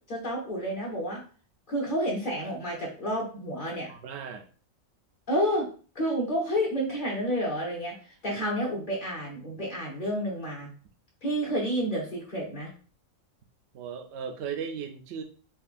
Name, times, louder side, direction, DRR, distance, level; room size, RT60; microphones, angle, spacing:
voice 1, 0.1-1.2 1.7-3.9 5.3-5.7 5.9-10.7 11.2-12.7, equal, 40° left, -3 dB, 1.3 m, -30 dB
voice 2, 3.9-4.5 8.3-8.4 13.7-15.2, right 7 dB, 60° right, 5 dB, 0.8 m, -37 dB
5.3 x 2.4 x 2.5 m, 0.39 s
omnidirectional pair, 1.4 m